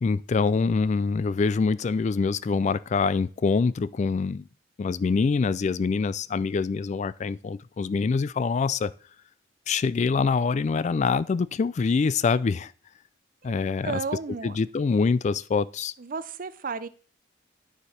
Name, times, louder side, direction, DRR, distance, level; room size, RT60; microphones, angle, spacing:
voice 1, 0.0-4.4 4.8-8.9 9.7-12.7 13.4-13.9 14.4-15.9, left 4 dB, 40° left, 0.3 m, -25 dB
voice 2, 13.8-14.6 16.0-16.9, right 4 dB, 50° right, 0.6 m, -33 dB
9.7 x 4.9 x 5.7 m
head